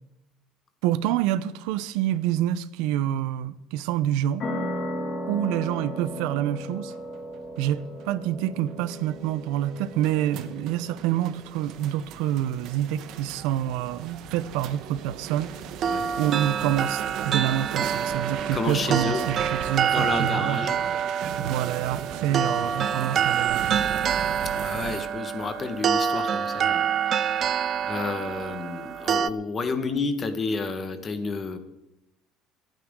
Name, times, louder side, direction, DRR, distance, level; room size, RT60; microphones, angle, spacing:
voice 1, 0.8-4.5 5.3-6.9 7.6-15.5 16.2-20.7 21.4-23.8, right 12 dB, 80° right, 0.7 m, -27 dB
sound 1, 4.4-11.6, equal, 40° left, 2.2 m, -36 dB
sound 2, 6.4-25.0, right 9 dB, 55° right, 1.1 m, -38 dB
sound 3, 15.8-29.3, right 8 dB, 35° right, 0.4 m, -27 dB
voice 2, 18.5-19.2 19.8-20.8 24.5-27.5 27.8-31.6, left 4 dB, 25° left, 1.4 m, -31 dB
27.0 x 9.3 x 3.7 m
cardioid pair, 155°, 0 cm